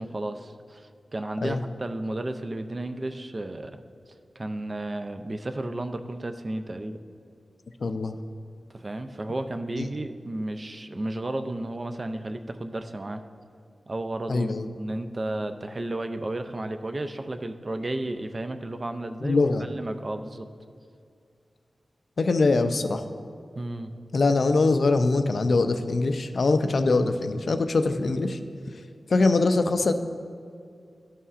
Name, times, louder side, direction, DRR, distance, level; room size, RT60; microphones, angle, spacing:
voice 1, 0.0-3.8 4.4-7.0 8.7-13.2 13.9-20.5 23.6-23.9, right 1 dB, 35° right, 8 dB, 0.4 m, -33 dB
voice 2, 7.8-8.1 9.8-9.9 14.3-14.7 19.2-19.7 22.2-23.0 24.1-28.4 29.1-29.9, left 3 dB, 60° left, 9 dB, 0.4 m, -23 dB
12.5 x 5.6 x 2.4 m, 2.3 s
wide cardioid pair, 120°, 0 cm